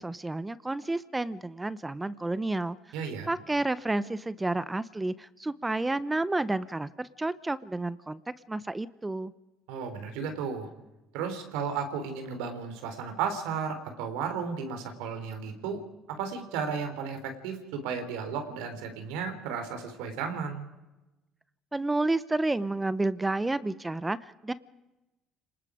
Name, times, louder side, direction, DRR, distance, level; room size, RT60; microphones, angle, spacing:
voice 1, 0.0-2.8 3.3-8.2 8.5-9.3 21.7-24.5, right 2 dB, 15° right, 16 dB, 0.9 m, -30 dB
voice 2, 2.9-3.3 9.7-10.7 11.1-15.8 16.2-20.7, right 6 dB, 80° right, 7 dB, 3.5 m, -34 dB
29.5 x 20.0 x 5.1 m, 1.0 s
supercardioid pair, 70°, 0 cm